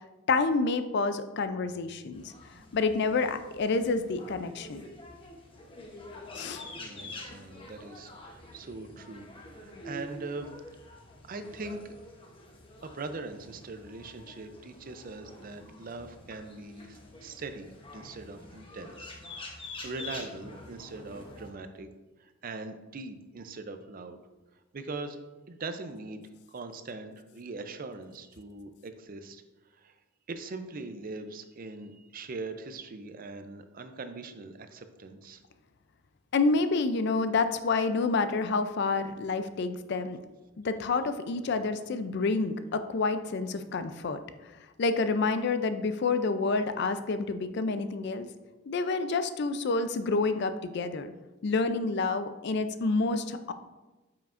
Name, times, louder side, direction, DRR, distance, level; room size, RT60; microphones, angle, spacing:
voice 1, 0.3-2.2 2.7-4.8 6.3-6.6 36.3-40.2 40.6-44.2 44.8-48.3 48.7-51.1 51.4-53.5, left 3 dB, 60° left, 10 dB, 0.4 m, -28 dB
sound 1, 2.1-21.5, left 2 dB, 25° left, 0.9 m, -47 dB
voice 2, 6.8-10.6 11.3-11.9 12.8-21.9 22.2-24.2 24.7-25.2 25.5-29.4 29.8-29.9 30.3-35.4, right 3 dB, 45° right, 9 dB, 0.5 m, -41 dB
9.0 x 5.8 x 2.5 m, 1.1 s
head